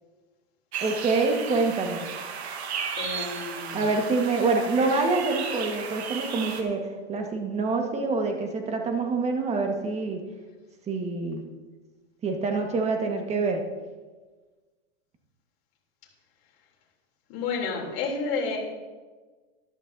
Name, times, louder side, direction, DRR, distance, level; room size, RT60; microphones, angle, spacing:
sound 1, 0.7-6.6, right 7 dB, 85° right, 1.5 m, -35 dB
voice 1, 0.8-2.1 3.7-10.2 10.9-11.4 12.2-13.6, right 3 dB, 20° right, 3 dB, 1.5 m, -26 dB
voice 2, 3.0-3.8 17.3-18.6, left 4 dB, 45° left, -2 dB, 3.3 m, -30 dB
13.5 x 11.5 x 2.7 m, 1.3 s
supercardioid pair, 135°, 31 cm